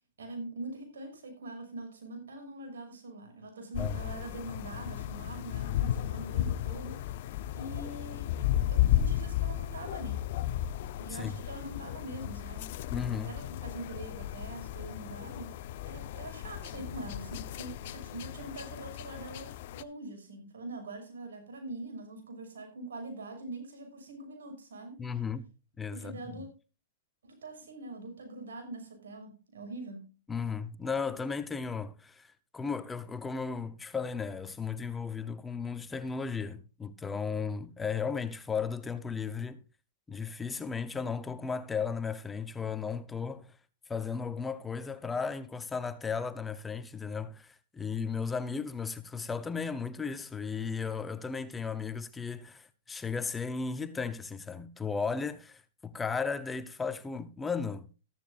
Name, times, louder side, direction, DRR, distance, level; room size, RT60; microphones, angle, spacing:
voice 1, 0.2-7.1 7.5-8.3 8.7-10.3 11.0-12.7 13.1-15.5 15.8-25.0 25.9-26.5 27.2-30.1, right 2 dB, 85° right, 6.3 m, -43 dB
sound 1, 3.7-19.8, left 12 dB, 55° left, 0.7 m, -34 dB
voice 2, 12.9-13.3 25.0-25.5 25.8-26.4 30.3-39.6 40.1-43.5 43.9-57.9, left 5 dB, 10° left, 0.8 m, -35 dB
14.0 x 13.5 x 2.5 m
hypercardioid pair, 135°, 0 cm